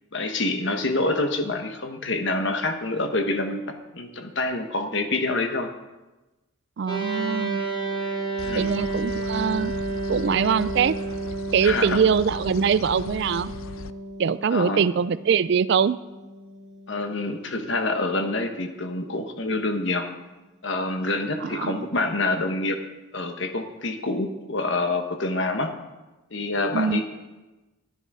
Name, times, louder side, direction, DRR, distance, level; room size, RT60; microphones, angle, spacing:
voice 1, 0.1-5.7 8.4-8.7 11.6-12.0 14.5-14.8 16.9-20.1 20.6-22.8 23.1-25.7 26.3-27.0, left 2 dB, 55° left, 6 dB, 1.2 m, -27 dB
voice 2, 6.8-7.7 8.5-9.7 10.1-11.0 11.5-13.5 14.2-16.0 21.4-21.9 26.7-27.0, right 6 dB, 55° right, 16 dB, 0.3 m, -23 dB
sound 1, 6.9-18.4, right 2 dB, 20° left, 1.9 m, -32 dB
sound 2, 8.4-13.9, left 5 dB, 70° left, 0.4 m, -39 dB
12.5 x 11.0 x 4.8 m, 1.1 s
head